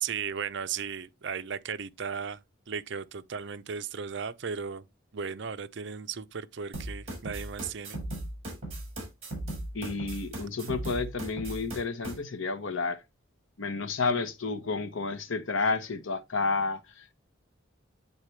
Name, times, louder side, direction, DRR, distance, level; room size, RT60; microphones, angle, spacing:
voice 1, 0.0-2.4 2.7-4.8 5.1-8.0, right 6 dB, 55° right, 0.5 m, -36 dB
sound 1, 6.7-12.1, right 1 dB, 30° right, 4.5 m, -37 dB
voice 2, 9.7-13.0 13.6-17.1, left 4 dB, 70° left, 0.9 m, -31 dB
9.8 x 4.0 x 3.2 m
head